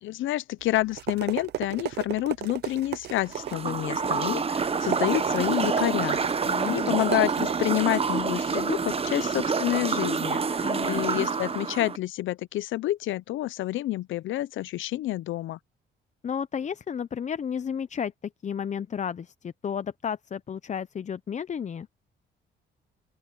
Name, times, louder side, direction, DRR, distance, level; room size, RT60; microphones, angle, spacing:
voice 1, 0.0-6.2 6.7-15.6, left 15 dB, 80° left, 0.6 m, -28 dB
sound 1, 0.6-9.5, right 12 dB, 55° right, 0.4 m, -36 dB
sound 2, 3.3-12.0, right 5 dB, 30° right, 0.9 m, -27 dB
voice 2, 6.4-7.0 10.6-11.2 16.2-18.1 18.4-21.9, left 7 dB, 35° left, 0.6 m, -32 dB
open air
cardioid pair, 90°, 20 cm